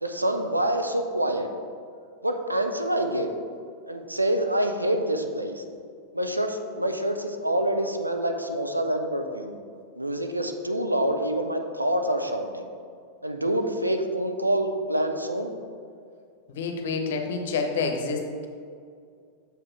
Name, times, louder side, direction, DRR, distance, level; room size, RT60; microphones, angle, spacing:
voice 1, 0.0-1.5 2.2-3.3 3.9-5.6 6.1-9.6 10.0-12.7 13.2-15.5, right 1 dB, 85° right, 5 dB, 0.5 m, -26 dB
voice 2, 16.5-18.5, left 4 dB, 55° left, 4 dB, 0.8 m, -28 dB
7.0 x 5.8 x 3.2 m, 2.3 s
figure-of-eight pair, 90°, 0 cm